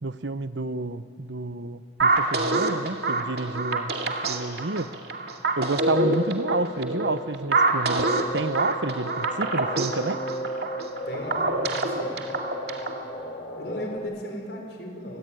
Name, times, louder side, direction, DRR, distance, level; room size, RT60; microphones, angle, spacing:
voice 1, 0.0-4.9 5.6-10.2, right 3 dB, 80° right, 13 dB, 0.9 m, -30 dB
sound 1, 2.0-13.0, right 2 dB, 60° right, 2.4 m, -26 dB
sound 2, 8.0-14.0, equal, 40° left, 3.3 m, -35 dB
voice 2, 11.1-12.1 13.6-15.2, left 1 dB, 70° left, 2 dB, 6.0 m, -35 dB
29.0 x 21.0 x 9.3 m, 2.6 s
head